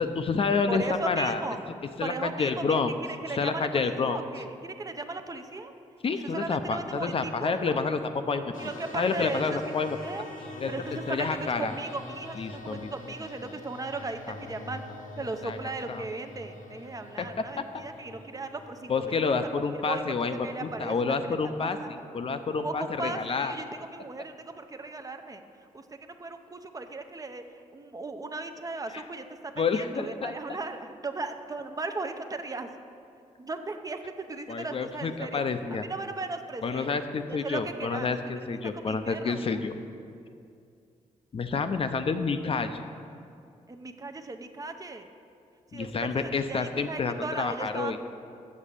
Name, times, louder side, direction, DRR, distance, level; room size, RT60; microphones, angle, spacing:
voice 1, 0.0-1.4 2.0-2.9 3.3-4.2 6.0-8.5 8.9-10.0 10.6-10.7 11.1-11.7 12.4-12.9 14.3-14.4 15.4-15.6 15.9-16.0 17.2-17.3 17.6-17.7 18.9-20.4 20.6-21.8 22.1-23.6 28.9-29.0 29.6-30.3 34.5-35.8 36.6-39.7 41.3-42.8 45.7-48.0, left 4 dB, 45° left, 8 dB, 0.5 m, -29 dB
voice 2, 0.7-1.6 2.0-2.8 3.2-5.7 6.3-7.8 8.6-10.3 10.7-14.8 15.2-19.3 19.9-20.1 20.4-21.3 21.6-22.1 22.6-25.4 25.7-27.4 27.7-32.7 33.4-35.4 35.7-36.9 37.3-38.1 38.7-39.6 43.7-45.1 45.7-48.0, right 3 dB, 25° right, 6 dB, 0.6 m, -37 dB
sound 1, 8.5-21.7, left 2 dB, 85° left, 0.8 m, -45 dB
7.3 x 6.1 x 6.7 m, 2.4 s
cardioid pair, 75°, 13 cm